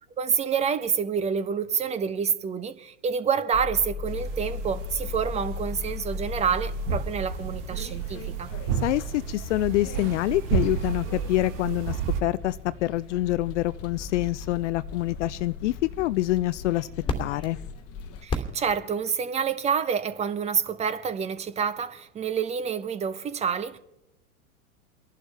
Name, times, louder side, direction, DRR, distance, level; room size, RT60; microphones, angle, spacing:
voice 1, 0.2-8.5 18.2-23.8, right 7 dB, 15° right, 0.6 m, -28 dB
sound 1, 3.5-18.3, left 6 dB, 30° left, 1.1 m, -38 dB
sound 2, 4.0-12.2, right 9 dB, 50° right, 1.2 m, -32 dB
sound 3, 4.7-19.1, left 2 dB, 10° left, 2.2 m, -42 dB
voice 2, 8.8-16.9 17.2-17.6, left 17 dB, 55° left, 0.5 m, -26 dB
30.0 x 11.5 x 3.4 m
hypercardioid pair, 100°, 45 cm